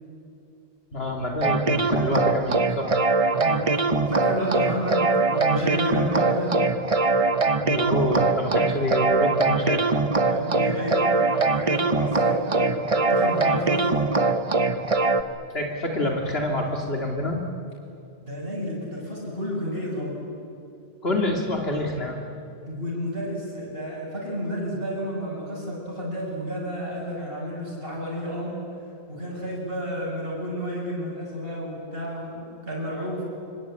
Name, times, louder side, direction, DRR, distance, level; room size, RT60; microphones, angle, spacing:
voice 1, 0.9-3.0 7.6-9.9 15.5-17.4 21.0-22.2, left 1 dB, 65° left, 1 dB, 2.7 m, -27 dB
sound 1, 1.4-15.2, right 3 dB, 35° right, 1.1 m, -22 dB
voice 2, 3.3-6.6 10.3-13.9 18.2-20.2 22.7-28.6 29.1-33.2, equal, 60° right, -5 dB, 6.9 m, -31 dB
25.5 x 25.0 x 8.9 m, 2.7 s
omnidirectional pair, 1.1 m